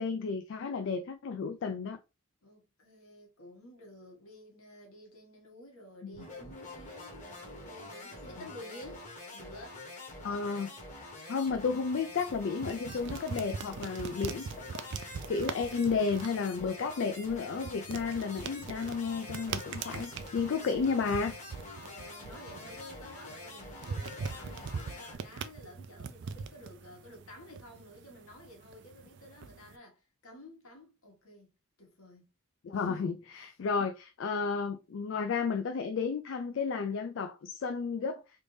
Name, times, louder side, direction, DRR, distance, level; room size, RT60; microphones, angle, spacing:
voice 1, 0.0-2.0 6.0-6.3 10.2-10.7 11.0-14.5 14.7-21.4 32.6-38.2, left 5 dB, 55° left, 0.3 m, -32 dB
voice 2, 2.4-9.8 21.8-31.5 31.8-32.3 32.7-33.5, left 1 dB, 70° left, 1.4 m, -52 dB
sound 1, 6.1-25.2, left 2 dB, 35° left, 1.1 m, -46 dB
sound 2, 11.5-29.8, right 5 dB, 55° right, 0.3 m, -43 dB
3.4 x 2.6 x 3.1 m
head